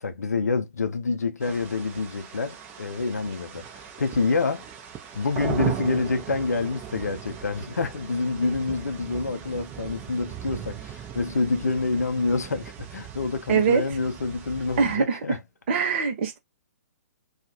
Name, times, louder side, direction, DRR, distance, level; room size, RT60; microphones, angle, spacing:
voice 1, 0.0-4.7 5.1-15.4, left 4 dB, 70° left, 0.6 m, -27 dB
sound 1, 1.4-15.0, right 9 dB, 20° right, 0.7 m, -38 dB
voice 2, 13.5-13.8 14.8-15.2 15.7-16.4, right 6 dB, 40° right, 1.0 m, -22 dB
2.4 x 2.3 x 2.8 m
figure-of-eight pair, 120°, 9 cm